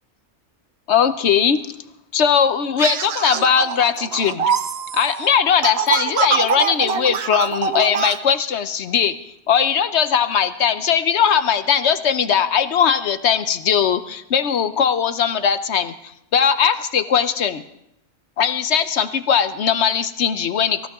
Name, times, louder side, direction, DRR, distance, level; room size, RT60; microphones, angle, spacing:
voice 1, 0.9-1.6 2.1-4.5 4.9-9.1 9.5-15.9 16.3-17.6 18.4-20.9, left 7 dB, 70° left, 11 dB, 1.0 m, -19 dB
sound 1, 2.8-8.2, right 7 dB, 60° right, 0.9 m, -24 dB
24.0 x 15.5 x 3.6 m, 0.80 s
omnidirectional pair, 1.2 m